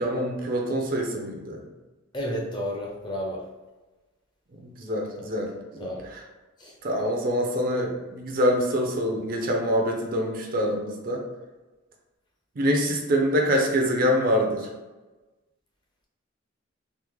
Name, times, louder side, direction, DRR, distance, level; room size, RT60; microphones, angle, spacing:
voice 1, 0.0-1.6 4.5-5.9 6.8-11.2 12.6-14.7, equal, 45° right, 1 dB, 0.5 m, -25 dB
voice 2, 2.1-3.5 5.2-5.3 5.8-6.1 6.6-6.8, equal, 20° left, -2 dB, 0.5 m, -32 dB
3.5 x 2.0 x 3.0 m, 1.2 s
head